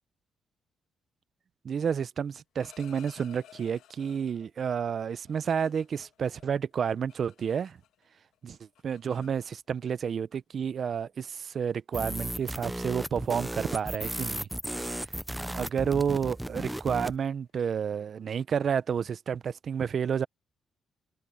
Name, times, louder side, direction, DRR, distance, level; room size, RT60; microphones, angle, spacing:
voice 1, 1.6-7.8 8.4-8.6 8.8-14.5 14.8-15.1 15.5-20.3, right 7 dB, 50° right, 0.7 m, -30 dB
sound 1, 2.5-4.5 5.0-8.1 8.3-9.9 10.8-10.9 11.2-11.6 12.0-12.3 12.6-12.9 13.1-13.4 13.7-19.1, left 12 dB, 85° left, 2.2 m, -58 dB
sound 2, 11.9-17.2, right 1 dB, 5° right, 0.4 m, -35 dB
cardioid pair, 90°, 0 cm